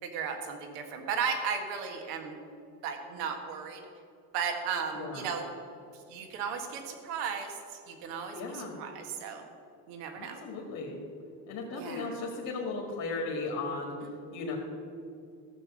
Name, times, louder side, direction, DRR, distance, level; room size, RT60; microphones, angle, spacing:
voice 1, 0.0-2.4 2.8-3.8 4.3-5.4 6.1-7.6 7.9-9.4 9.9-10.4 11.7-12.1, right 6 dB, 85° right, 4 dB, 1.7 m, -35 dB
voice 2, 4.9-5.3 8.3-8.8 10.2-11.0 11.5-14.6, left 3 dB, 50° left, -1 dB, 2.1 m, -36 dB
15.0 x 6.9 x 6.3 m, 2.6 s
supercardioid pair, 95°, 45 cm